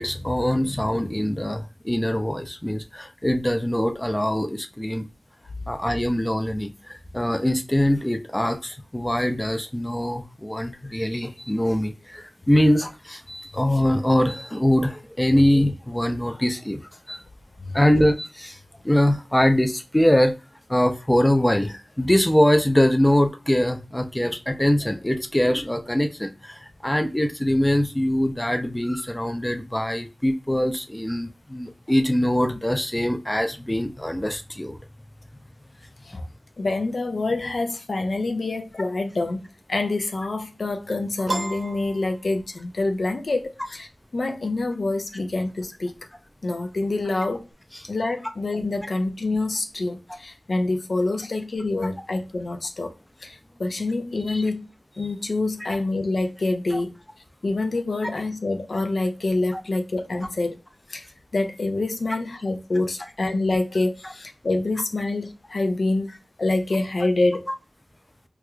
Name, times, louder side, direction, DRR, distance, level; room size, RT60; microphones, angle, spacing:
voice 1, 0.0-5.1 5.7-16.8 17.1-17.2 17.7-18.6 18.8-20.3 20.7-34.8 54.3-54.4 56.7-56.8 59.5-59.6, left 1 dB, 15° left, 0.4 m, -23 dB
voice 2, 36.6-43.9 44.1-45.9 46.4-47.5 47.8-52.9 53.2-54.7 55.0-57.0 57.4-60.6 60.9-61.1 61.3-67.5, left 2 dB, 75° left, 0.5 m, -26 dB
Piano, 41.3-42.8, right 2 dB, 80° right, 0.7 m, -32 dB
4.6 x 2.4 x 2.3 m
wide cardioid pair, 60°, 0 cm